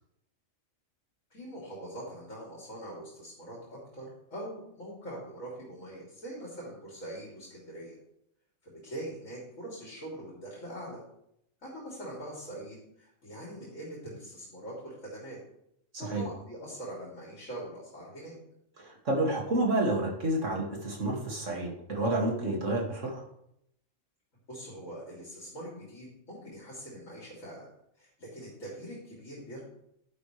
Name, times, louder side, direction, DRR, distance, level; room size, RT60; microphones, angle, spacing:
voice 1, 1.3-8.0 8.6-11.0 11.6-15.4 16.0-18.4 24.5-27.7 28.0-29.6, right 1 dB, 75° left, -5 dB, 3.6 m, -43 dB
voice 2, 15.9-16.3 18.8-23.2, right 1 dB, 70° right, -1 dB, 2.8 m, -29 dB
11.0 x 11.0 x 3.4 m, 0.76 s
omnidirectional pair, 1.3 m